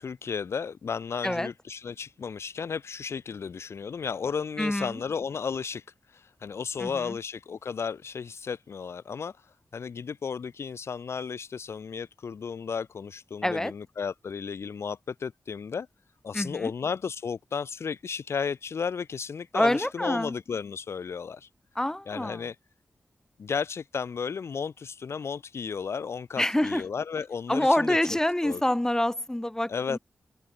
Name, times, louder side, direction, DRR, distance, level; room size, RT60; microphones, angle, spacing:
voice 1, 0.0-15.9 16.2-21.5 22.1-22.6 23.4-28.0 28.4-28.6 29.7-30.0, left 6 dB, 70° left, 0.4 m, -34 dB
voice 2, 4.6-5.0 6.8-7.2 13.4-13.7 16.3-16.7 19.5-20.4 21.8-22.4 26.4-26.8 27.5-30.0, left 1 dB, 10° left, 0.5 m, -26 dB
open air
cardioid pair, 60°, 5 cm